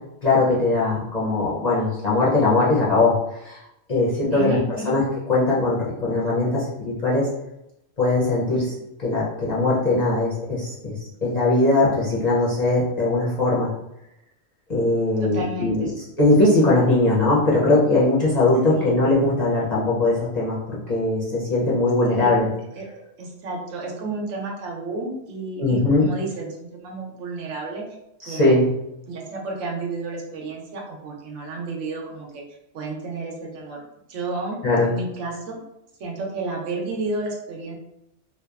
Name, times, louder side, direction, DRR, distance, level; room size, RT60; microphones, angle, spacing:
voice 1, 0.2-3.6 3.9-4.6 4.8-5.0 5.3-7.3 8.0-8.7 9.0-11.0 11.2-13.7 14.7-15.9 16.2-22.5 25.6-26.0 28.2-28.7 34.6-34.9, left 2 dB, 50° left, -6 dB, 0.5 m, -20 dB
voice 2, 4.3-4.9 15.3-15.9 18.7-19.0 22.1-22.4 22.8-22.9 23.2-27.8 28.3-28.6 29.1-32.4 32.7-33.8 34.1-34.6 34.8-35.6 36.0-37.8, right 2 dB, 85° right, 0 dB, 1.0 m, -31 dB
2.8 x 2.1 x 2.3 m, 0.84 s
omnidirectional pair, 1.2 m